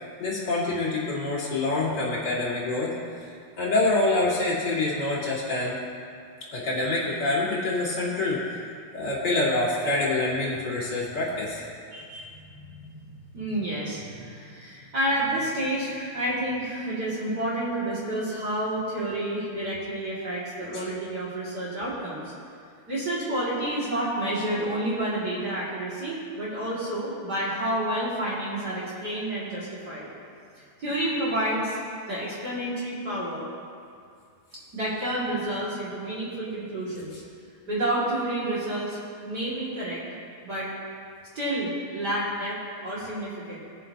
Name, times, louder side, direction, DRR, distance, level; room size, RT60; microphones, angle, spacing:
voice 1, 0.2-2.9 3.2-3.3 3.6-5.8 6.5-8.6 8.9-11.6 20.6-20.8, left 2 dB, 35° left, -7 dB, 2.0 m, -26 dB
voice 2, 11.9-22.3 22.9-30.1 30.8-31.8 32.1-33.5 34.7-37.2 37.7-40.0 40.4-40.7 41.3-43.6, right 1 dB, 30° right, -8 dB, 2.1 m, -30 dB
21.0 x 7.3 x 2.8 m, 2.3 s
omnidirectional pair, 4.5 m